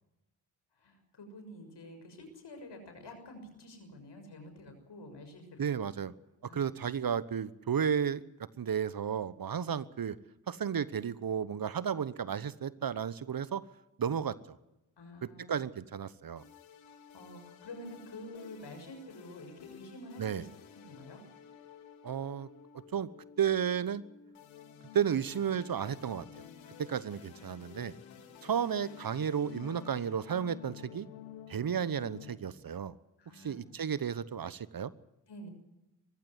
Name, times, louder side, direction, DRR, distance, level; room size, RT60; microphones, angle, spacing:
voice 1, 0.8-5.7 6.5-6.7 15.0-15.5 16.8-20.5 20.7-21.2 33.2-33.7 35.3-35.5, left 1 dB, 65° left, 6 dB, 6.3 m, -49 dB
voice 2, 5.6-6.1 6.5-8.2 8.6-10.2 10.5-13.6 14.0-14.6 15.4-16.4 20.2-20.4 22.0-22.5 22.9-23.1 23.4-24.0 24.9-26.4 26.8-27.9 28.4-31.1 31.5-33.0 33.3-34.9, right 8 dB, 50° right, 17 dB, 1.1 m, -33 dB
sound 1, 16.4-32.4, left 9 dB, 90° left, 2.4 m, -52 dB
21.0 x 15.5 x 9.6 m, 0.96 s
supercardioid pair, 40°, 45 cm